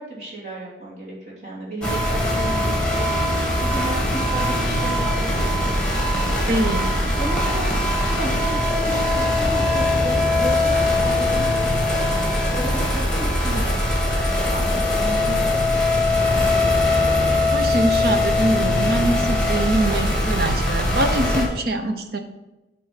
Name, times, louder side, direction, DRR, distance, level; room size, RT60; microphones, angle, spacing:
voice 1, 0.0-5.7 7.2-7.7 8.0-16.0, right 2 dB, 40° right, -7 dB, 2.9 m, -33 dB
sound 1, 1.8-21.4, left 1 dB, 5° left, 1.6 m, -21 dB
voice 2, 6.5-6.8 17.5-22.2, right 1 dB, 55° right, 6 dB, 0.8 m, -23 dB
9.0 x 3.5 x 5.9 m, 1.0 s
head